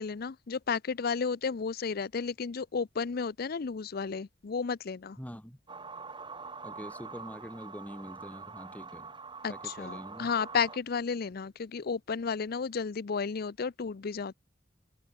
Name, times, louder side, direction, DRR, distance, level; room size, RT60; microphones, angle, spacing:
voice 1, 0.0-5.2 9.4-14.3, left 5 dB, 55° left, 0.5 m, -33 dB
voice 2, 5.2-5.6 6.6-9.1 9.5-10.3, equal, 10° left, 4.9 m, -44 dB
sound 1, 5.7-10.8, right 4 dB, 25° right, 2.9 m, -44 dB
open air
head